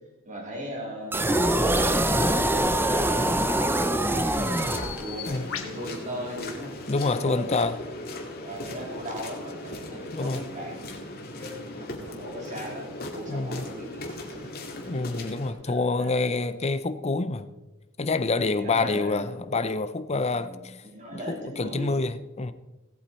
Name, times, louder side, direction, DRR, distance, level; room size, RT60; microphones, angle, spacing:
voice 1, 0.2-4.3 5.0-6.7 7.0-7.5 8.4-14.7 15.6-16.1 18.5-19.3 20.3-22.0, equal, 40° right, 3.4 m, -38 dB
sound 1, 1.1-5.3, right 1 dB, 10° right, 0.6 m, -24 dB
Bird vocalization bird call bird song, 3.0-7.3, left 8 dB, 90° left, 1.4 m, -43 dB
sound 2, 4.3-15.5, left 1 dB, 50° left, 2.1 m, -38 dB
voice 2, 6.9-7.7 10.1-10.4 13.3-13.6 14.8-17.5 18.0-20.8 21.3-22.5, left 3 dB, 30° left, 0.6 m, -27 dB
17.0 x 8.3 x 4.3 m
head